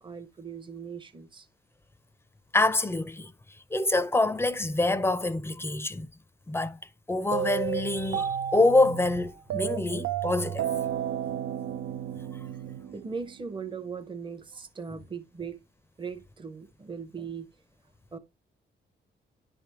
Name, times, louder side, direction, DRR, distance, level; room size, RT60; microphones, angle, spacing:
voice 1, 0.0-1.5 12.7-15.6 16.0-17.5 18.1-18.2, right 5 dB, 25° right, 0.8 m, -39 dB
voice 2, 2.5-3.3 3.7-6.1 6.5-6.8 7.1-10.6, left 2 dB, 10° left, 0.5 m, -26 dB
sound 1, 7.3-13.5, right 9 dB, 80° right, 0.5 m, -32 dB
10.0 x 3.4 x 3.0 m
cardioid pair, 95°, 20 cm